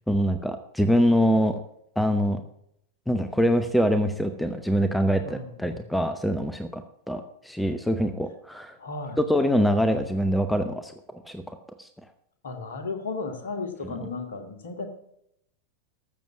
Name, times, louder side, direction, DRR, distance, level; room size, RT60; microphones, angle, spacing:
voice 1, 0.1-1.6 2.0-2.4 3.1-6.8 7.1-8.8 9.2-10.9 11.2-11.9, equal, 5° left, 9 dB, 0.9 m, -24 dB
voice 2, 5.2-5.8 8.8-9.2 12.4-14.9, left 4 dB, 60° left, 5 dB, 2.2 m, -34 dB
13.5 x 7.2 x 6.0 m, 0.74 s
figure-of-eight pair, 90°, 0 cm